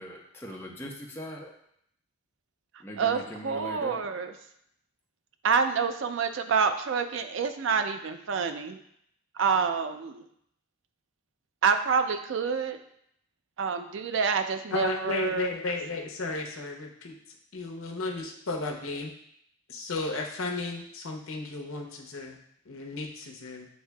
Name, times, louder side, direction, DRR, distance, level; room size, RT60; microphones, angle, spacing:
voice 1, 0.0-1.5 2.8-4.1, equal, 10° left, -2 dB, 0.6 m, -41 dB
voice 2, 3.0-4.3 5.4-8.8 9.4-10.2 11.6-12.8 13.6-15.5, right 6 dB, 60° right, 8 dB, 0.4 m, -27 dB
voice 3, 14.7-17.1 17.5-19.1 19.7-22.4 22.7-23.7, left 3 dB, 75° left, 1 dB, 0.7 m, -34 dB
8.0 x 2.7 x 2.2 m, 0.71 s
head